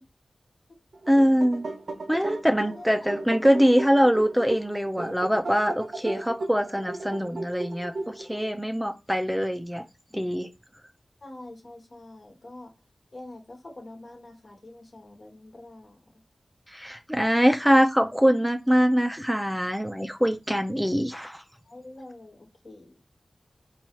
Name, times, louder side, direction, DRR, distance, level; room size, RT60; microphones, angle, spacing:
sound 1, 0.9-8.5, right 2 dB, 75° right, 0.5 m, -36 dB
voice 1, 1.1-1.7 2.1-9.8 10.1-10.5 16.7-21.4, equal, 5° right, 0.4 m, -23 dB
voice 2, 2.6-3.1 11.2-12.7 13.1-16.0 21.6-23.0, left 2 dB, 60° left, 1.1 m, -45 dB
4.2 x 2.3 x 2.9 m
wide cardioid pair, 80°, 0 cm